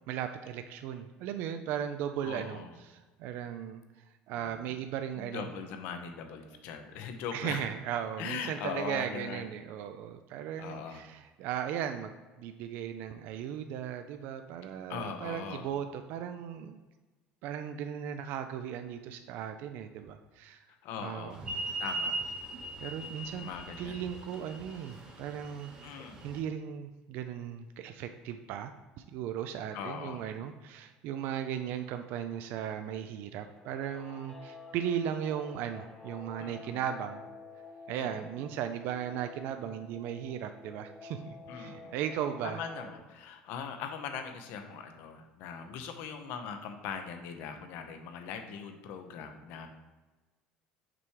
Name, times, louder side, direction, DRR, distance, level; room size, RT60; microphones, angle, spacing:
voice 1, 0.1-3.8 4.3-5.5 7.3-16.8 17.4-20.6 21.0-21.4 22.8-23.5 23.8-25.7 26.2-28.7 29.0-37.2 37.9-42.6, right 9 dB, 65° right, 8 dB, 0.4 m, -37 dB
voice 2, 2.2-2.7 4.3-4.5 5.2-7.7 8.2-9.4 10.6-11.0 14.9-15.7 20.7-21.4 21.8-22.2 23.4-24.0 25.8-26.2 29.7-30.2 36.4-36.8 37.9-38.3 41.5-41.9 42.4-49.7, left 6 dB, 70° left, 6 dB, 0.8 m, -40 dB
sound 1, 21.4-26.4, right 2 dB, 25° right, 1.1 m, -39 dB
Guitar, 33.5-43.0, left 3 dB, 25° left, 1.2 m, -50 dB
5.9 x 3.3 x 4.7 m, 1.2 s
cardioid pair, 130°, 4 cm